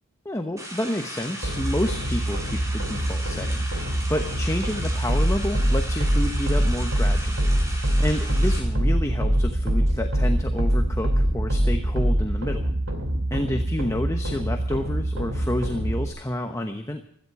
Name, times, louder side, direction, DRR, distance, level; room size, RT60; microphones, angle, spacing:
voice 1, 0.2-7.6 8.0-12.7 13.3-17.0, left 1 dB, 15° left, 5 dB, 1.0 m, -29 dB
sound 1, 0.6-8.6, right 1 dB, 15° right, 3.5 m, -37 dB
sound 2, 1.4-16.1, right 1 dB, 75° right, 2.4 m, -24 dB
16.5 x 14.0 x 4.7 m, 0.67 s
head